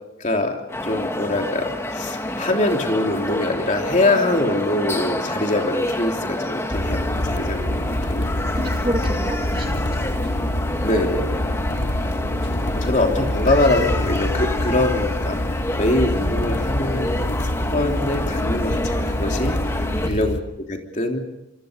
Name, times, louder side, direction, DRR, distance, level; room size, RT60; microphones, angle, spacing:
voice 1, 0.2-0.6 0.8-8.2 8.5-8.6 10.8-11.4 12.7-17.4 17.7-21.2, left 2 dB, 40° left, 2 dB, 3.3 m, -23 dB
sound 1, 0.7-20.1, left 1 dB, 15° left, 1.5 m, -28 dB
sound 2, 6.7-20.4, left 1 dB, 80° left, 1.7 m, -26 dB
voice 2, 7.7-8.3 8.5-10.6 11.9-12.4 20.0-20.2, right 1 dB, 30° right, 3 dB, 2.1 m, -32 dB
27.0 x 25.0 x 5.2 m, 0.90 s
head